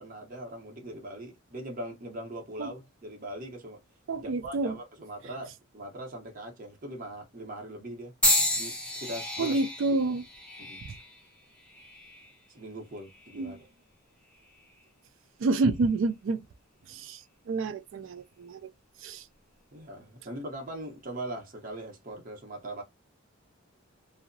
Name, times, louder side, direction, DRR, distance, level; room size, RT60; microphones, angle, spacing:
voice 1, 0.0-3.8 4.2-8.1 8.5-9.6 10.6-10.8 12.5-13.6 19.7-22.8, right 1 dB, 40° right, 0.7 m, -41 dB
voice 2, 4.1-4.8 9.4-10.2 13.4-13.6 15.4-16.4 16.9-17.2 17.5-18.7 19.0-19.2, right 3 dB, 55° right, 0.3 m, -28 dB
sound 1, 8.2-12.4 13.1-13.5 14.5-14.6, left 1 dB, 5° left, 0.5 m, -31 dB
2.7 x 2.0 x 2.5 m
head